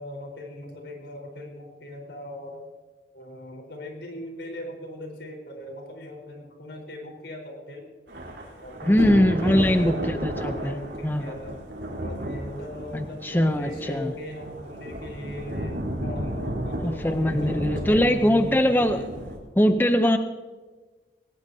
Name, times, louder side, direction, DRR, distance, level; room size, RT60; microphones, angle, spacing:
voice 1, 0.0-2.6 3.1-7.9 8.6-11.6 12.0-19.2, left 1 dB, 90° left, 1 dB, 4.3 m, -39 dB
Thunder / Rain, 8.1-19.4, right 1 dB, 85° right, 4.0 m, -33 dB
voice 2, 8.8-10.7 11.0-11.3 12.9-14.1 16.8-19.0 19.6-20.2, equal, 10° left, 8 dB, 0.6 m, -22 dB
20.5 x 19.0 x 2.8 m, 1.3 s
head